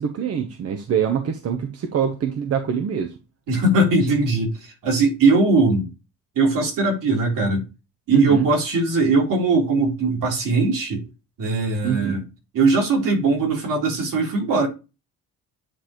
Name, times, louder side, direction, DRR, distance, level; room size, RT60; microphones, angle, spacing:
voice 1, 0.0-3.1 8.1-8.5 11.8-12.2, right 8 dB, 45° right, 0.9 m, -24 dB
voice 2, 3.5-5.9 6.4-7.6 8.1-11.0 11.4-12.2 12.5-14.7, right 3 dB, 60° right, 3.7 m, -20 dB
9.2 x 4.0 x 3.0 m
cardioid pair, 165°, 36 cm